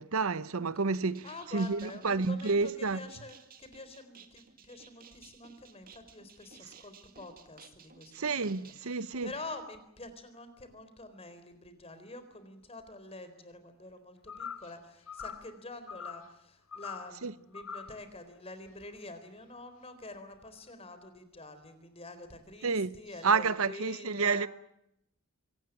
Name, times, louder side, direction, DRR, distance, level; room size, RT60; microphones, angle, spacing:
voice 1, 0.0-1.3 1.5-3.0 8.1-9.3 17.2-17.3 22.6-23.0 23.2-24.5, right 4 dB, 85° right, 0.8 m, -29 dB
sound 1, 0.9-8.8, right 6 dB, 45° right, 2.2 m, -57 dB
voice 2, 1.2-24.5, left 2 dB, 30° left, 4.1 m, -47 dB
sound 2, 14.3-14.7 15.1-15.5 15.9-16.3 16.7-17.1 17.5-18.0, left 6 dB, 75° left, 2.2 m, -42 dB
24.5 x 18.5 x 9.2 m
head